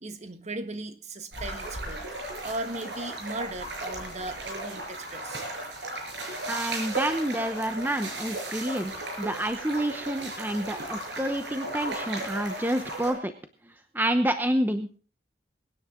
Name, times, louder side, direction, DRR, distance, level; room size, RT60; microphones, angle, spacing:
voice 1, 0.0-5.5, right 2 dB, 40° right, 9 dB, 1.4 m, -37 dB
sound 1, 1.3-13.1, right 2 dB, 75° right, 6.0 m, -36 dB
voice 2, 6.5-13.3 13.9-14.9, right 1 dB, 10° right, 8 dB, 0.9 m, -28 dB
22.5 x 10.0 x 3.8 m, 0.37 s
head